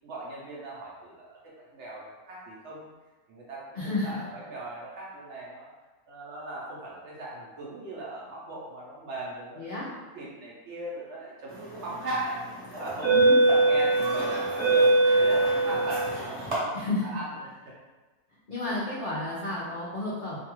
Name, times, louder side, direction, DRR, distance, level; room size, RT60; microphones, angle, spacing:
voice 1, 0.0-2.9 3.3-5.7 6.1-9.7 10.1-12.5 12.7-13.0 13.6-16.8 17.0-17.3, right 2 dB, 65° right, -5 dB, 0.7 m, -38 dB
voice 2, 3.7-4.2 9.6-9.9 13.0-13.4 16.7-17.2 18.5-20.4, left 2 dB, 80° left, -8 dB, 0.4 m, -31 dB
sound 1, 11.8-12.0 12.7-16.5, right 2 dB, 30° right, 0.8 m, -22 dB
2.6 x 2.3 x 2.9 m, 1.2 s
omnidirectional pair, 1.6 m